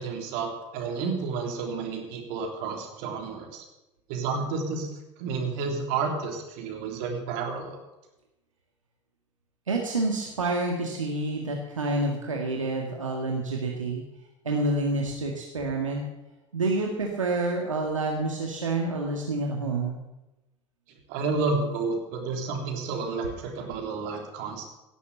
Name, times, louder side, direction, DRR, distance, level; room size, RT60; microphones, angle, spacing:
voice 1, 0.0-3.6 4.1-4.9 5.2-7.8 21.1-24.6, right 4 dB, 55° right, 2 dB, 3.4 m, -30 dB
voice 2, 9.7-14.0 14.4-16.0 16.5-20.0, right 2 dB, 85° right, 0 dB, 1.9 m, -28 dB
17.5 x 8.3 x 7.1 m, 0.98 s
figure-of-eight pair, 75°, 16 cm